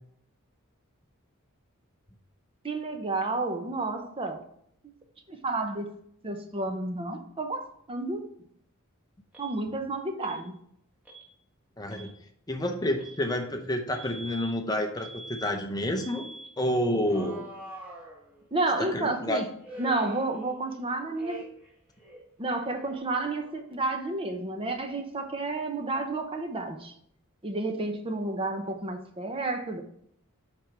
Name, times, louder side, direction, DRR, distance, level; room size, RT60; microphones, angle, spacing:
voice 1, 2.6-4.4 5.3-5.9 6.2-8.3 9.4-10.6 18.5-19.4 19.8-21.4 22.4-26.9 27.4-29.8, right 2 dB, 25° right, 0.7 m, -31 dB
Alarm, 9.3-9.6 10.2-10.4 11.1-11.3 11.8-12.1 13.0-13.2 13.9-14.5 15.0-15.5 16.0-16.5 17.1-18.6 19.6-20.8 21.2-21.7 22.0-23.7, right 2 dB, 5° right, 1.4 m, -45 dB
voice 2, 11.8-12.1 12.5-16.3 16.6-17.4 18.8-19.4, left 1 dB, 20° left, 0.7 m, -29 dB
7.5 x 5.2 x 3.4 m
head